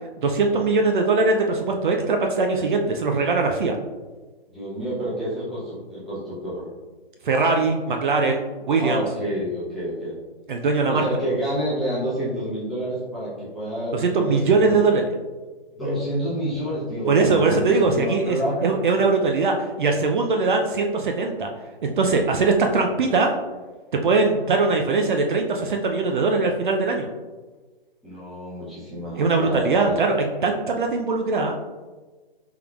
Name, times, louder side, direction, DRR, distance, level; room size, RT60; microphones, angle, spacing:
voice 1, 0.2-3.8 7.2-9.0 10.5-11.0 13.9-15.2 17.1-18.4 18.6-21.5 21.8-23.3 23.9-27.1 29.2-31.5, right 3 dB, 55° right, 2 dB, 0.5 m, -21 dB
voice 2, 4.5-6.7 8.8-10.2 10.9-14.8 15.7-18.8 28.0-30.1, equal, ahead, -12 dB, 0.9 m, -29 dB
4.5 x 3.5 x 2.3 m, 1.3 s
hypercardioid pair, 150°, 30 cm